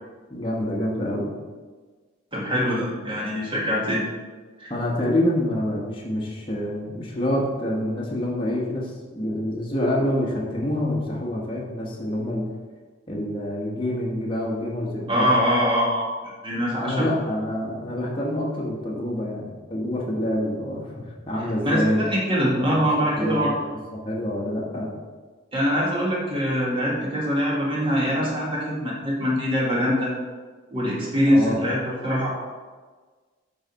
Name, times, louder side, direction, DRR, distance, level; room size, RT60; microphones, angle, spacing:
voice 1, 0.3-1.3 4.7-12.5 13.1-15.3 16.8-22.0 22.7-24.9 31.3-31.6, left 1 dB, 25° left, -4 dB, 1.1 m, -27 dB
voice 2, 2.3-4.0 4.6-4.7 15.1-17.1 21.6-23.5 25.5-30.1 30.7-32.3, equal, 25° right, -4 dB, 1.6 m, -23 dB
7.9 x 4.8 x 4.0 m, 1.4 s
head